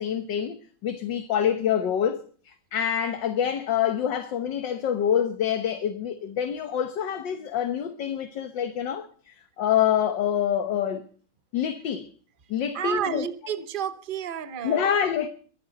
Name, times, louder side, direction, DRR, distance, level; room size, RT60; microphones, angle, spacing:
voice 1, 0.0-11.1 11.5-12.1 12.5-13.2 14.6-15.3, left 9 dB, 60° left, 1.7 m, -26 dB
voice 2, 12.7-15.0, right 9 dB, 40° right, 0.7 m, -31 dB
23.0 x 11.0 x 3.9 m
omnidirectional pair, 2.4 m